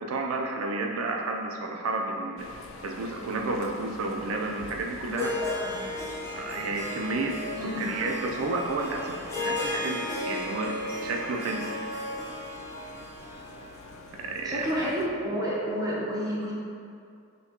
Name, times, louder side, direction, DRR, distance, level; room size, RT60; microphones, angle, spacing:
voice 1, 0.0-2.4 2.8-5.3 6.3-7.3 7.8-10.7 11.0-11.6 14.2-14.7, right 3 dB, 85° right, 1 dB, 0.4 m, -31 dB
sound 1, 2.4-15.1, left 3 dB, 70° left, 0.3 m, -47 dB
Harp, 5.0-14.1, left 2 dB, 15° left, 0.7 m, -35 dB
voice 2, 5.4-5.8 7.5-7.8 14.4-16.5, equal, 20° right, -6 dB, 0.7 m, -30 dB
5.6 x 2.2 x 2.8 m, 2.4 s
head